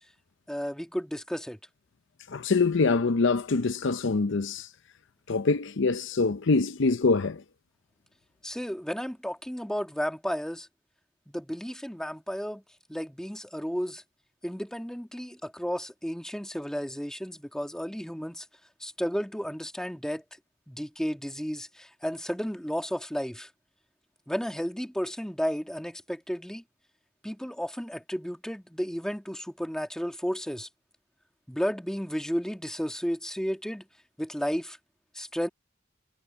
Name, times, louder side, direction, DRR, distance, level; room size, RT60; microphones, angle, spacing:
voice 1, 0.5-1.6 8.4-10.7 11.3-12.6 12.9-14.0 14.4-18.5 18.8-20.2 20.7-23.5 24.3-26.6 27.2-30.7 31.5-33.9 34.2-34.8 35.1-35.5, equal, 5° left, 1.8 m, -33 dB
voice 2, 2.3-4.7 5.3-7.4, left 3 dB, 65° left, 0.6 m, -24 dB
head